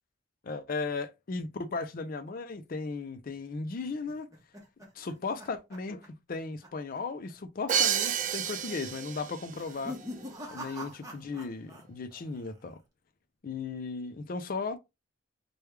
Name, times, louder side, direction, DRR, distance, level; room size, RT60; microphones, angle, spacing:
voice 1, 0.4-4.3 5.0-6.0 6.3-10.0 10.5-12.8 13.4-14.8, left 4 dB, 50° left, 0.4 m, -36 dB
sound 1, 3.8-6.4 6.6-7.0 7.3-7.4 8.1-8.5 9.4-11.8 12.1-12.7, equal, 20° right, 0.9 m, -44 dB
Crash cymbal, 7.7-9.5, right 8 dB, 40° right, 0.3 m, -29 dB
3.3 x 2.2 x 3.2 m
head